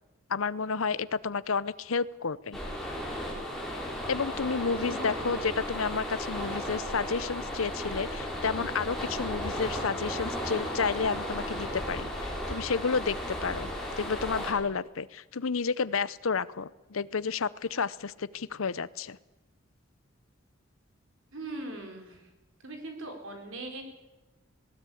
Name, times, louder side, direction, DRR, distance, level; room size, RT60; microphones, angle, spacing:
voice 1, 0.3-2.6 4.1-13.7 14.0-19.2, left 5 dB, 75° left, 18 dB, 0.7 m, -31 dB
sound 1, 2.5-14.5, equal, ahead, 4.9 m, -35 dB
voice 2, 4.8-5.3 21.3-22.2 22.6-23.8, right 2 dB, 70° right, 4 dB, 4.3 m, -40 dB
19.0 x 18.5 x 8.6 m, 1.1 s
head